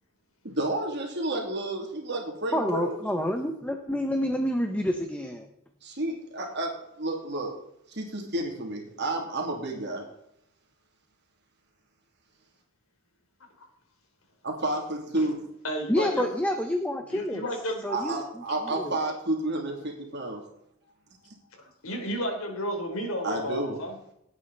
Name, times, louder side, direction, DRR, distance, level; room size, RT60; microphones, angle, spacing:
voice 1, 0.4-3.0 5.8-7.5 7.9-10.0 14.4-15.4 16.2-16.3 17.9-20.4 23.2-23.8, right 2 dB, 55° right, 1 dB, 2.8 m, -31 dB
voice 2, 2.5-5.5 15.9-17.4 17.8-18.2 18.7-19.0, equal, 5° left, 5 dB, 1.0 m, -28 dB
voice 3, 15.6-16.3 17.1-17.9 21.8-23.9, equal, 75° left, 2 dB, 3.9 m, -32 dB
17.5 x 8.7 x 4.1 m, 0.77 s
head